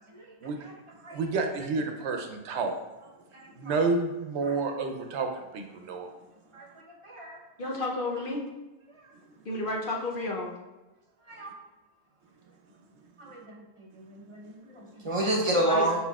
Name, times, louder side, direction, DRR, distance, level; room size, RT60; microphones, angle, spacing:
voice 1, 1.1-2.7 3.6-6.1, right 3 dB, 85° right, 5 dB, 0.9 m, -30 dB
voice 2, 7.0-7.4 11.3-11.5 13.2-13.4 14.3-16.0, right 1 dB, 30° right, -2 dB, 0.8 m, -28 dB
voice 3, 7.6-8.4 9.5-10.5 15.5-15.9, left 2 dB, 55° left, -1 dB, 0.8 m, -31 dB
5.4 x 4.3 x 2.3 m, 1.1 s
omnidirectional pair, 1.1 m